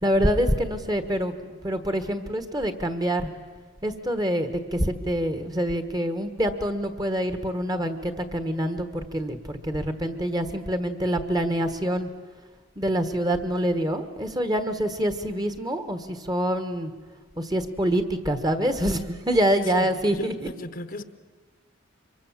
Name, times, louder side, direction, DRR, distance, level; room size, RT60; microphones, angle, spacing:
voice 1, 0.0-3.3 3.8-12.1 12.8-16.9 17.4-20.5, equal, 20° right, 1.4 m, -26 dB
voice 2, 20.2-21.0, left 2 dB, 45° left, 1.0 m, -35 dB
25.0 x 23.0 x 7.4 m
head